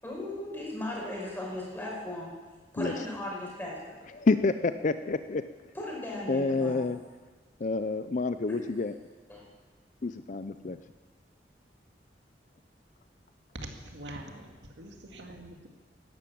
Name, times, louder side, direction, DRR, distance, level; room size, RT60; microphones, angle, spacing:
voice 1, 0.0-2.3 2.7-3.8 5.7-6.9 8.5-8.6 9.3-9.4, left 1 dB, 10° left, -3 dB, 5.5 m, -37 dB
voice 2, 4.1-5.4 6.3-7.0 7.6-8.9 10.0-10.8, left 3 dB, 45° left, 11 dB, 0.5 m, -28 dB
voice 3, 13.6-15.7, right 1 dB, 90° right, 3 dB, 2.1 m, -44 dB
13.0 x 12.0 x 8.7 m, 1.3 s
head